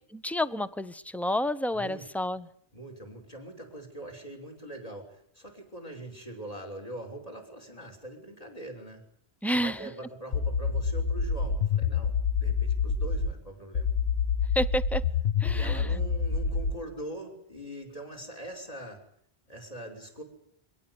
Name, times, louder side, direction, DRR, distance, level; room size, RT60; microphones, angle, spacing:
voice 1, 0.1-2.5 9.4-9.9 14.5-15.0 15.4-16.0, equal, ahead, 15 dB, 0.8 m, -30 dB
voice 2, 1.7-2.0 2.7-9.0 9.5-13.9 15.4-19.0 19.5-20.2, right 1 dB, 35° left, 5 dB, 6.1 m, -42 dB
sound 1, 10.3-13.3 13.7-16.8, left 6 dB, 85° left, 1.6 m, -27 dB
24.0 x 18.0 x 9.8 m, 0.65 s
omnidirectional pair, 1.1 m